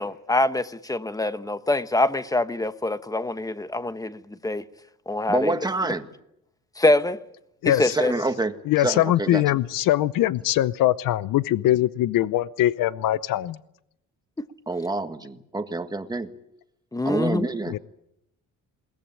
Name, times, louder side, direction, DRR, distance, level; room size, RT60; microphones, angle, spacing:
voice 1, 0.0-4.6 5.1-5.5 6.8-7.2 7.6-8.1 16.9-17.5, left 2 dB, 10° left, 1.0 m, -24 dB
voice 2, 5.3-6.1 7.9-8.5 8.8-9.4 14.7-16.3 17.0-17.8, right 2 dB, 10° right, 1.7 m, -27 dB
voice 3, 7.6-8.0 8.7-13.6 17.7-17.8, left 14 dB, 80° left, 0.8 m, -22 dB
21.5 x 19.0 x 8.8 m
cardioid pair, 125°, 33 cm